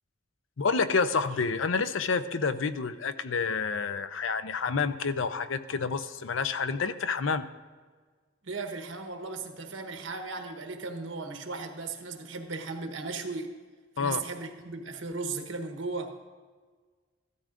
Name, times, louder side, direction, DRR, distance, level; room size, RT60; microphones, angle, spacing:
voice 1, 0.6-7.5 14.0-14.2, left 5 dB, 85° left, 12 dB, 0.6 m, -29 dB
voice 2, 8.4-13.5 14.0-16.2, right 3 dB, 90° right, 4 dB, 1.2 m, -36 dB
14.5 x 12.5 x 2.5 m, 1.5 s
head